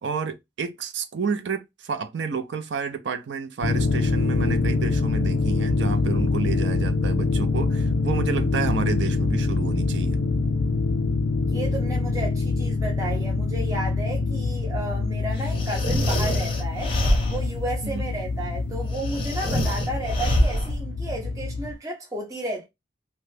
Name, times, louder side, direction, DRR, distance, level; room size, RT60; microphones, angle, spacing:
voice 1, 0.0-10.2 17.8-18.1, right 5 dB, 55° right, 0.4 m, -30 dB
sound 1, 3.6-21.7, left 3 dB, 65° left, 0.4 m, -25 dB
voice 2, 11.4-16.9 17.3-22.7, right 1 dB, 15° right, 0.7 m, -33 dB
sound 2, 15.5-17.6 18.9-20.8, equal, 25° left, 0.7 m, -25 dB
2.8 x 2.1 x 3.2 m
head